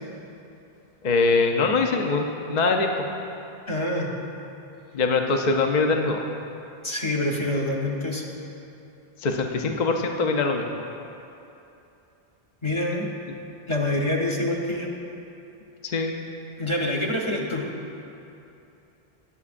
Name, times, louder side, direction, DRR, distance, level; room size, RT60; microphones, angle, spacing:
voice 1, 1.0-3.1 4.9-6.3 9.2-10.8 15.8-16.1, left 3 dB, 50° left, 3 dB, 0.7 m, -23 dB
voice 2, 3.7-4.1 6.8-8.3 12.6-13.0 13.7-14.9 16.6-17.7, left 1 dB, 30° left, -2 dB, 1.0 m, -26 dB
19.0 x 7.1 x 2.5 m, 2.8 s
omnidirectional pair, 1.0 m